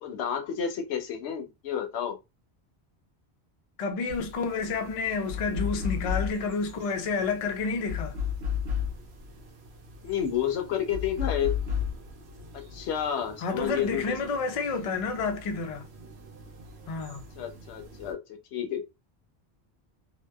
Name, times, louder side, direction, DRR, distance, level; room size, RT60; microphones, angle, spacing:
voice 1, 0.0-2.2 10.0-11.6 12.5-14.2 17.4-18.8, left 9 dB, 85° left, 0.9 m, -30 dB
voice 2, 3.8-8.2 13.4-15.9 16.9-17.3, left 4 dB, 55° left, 0.4 m, -30 dB
sound 1, 4.1-18.1, left 7 dB, 70° right, 0.9 m, -36 dB
2.8 x 2.1 x 2.2 m
omnidirectional pair, 1.1 m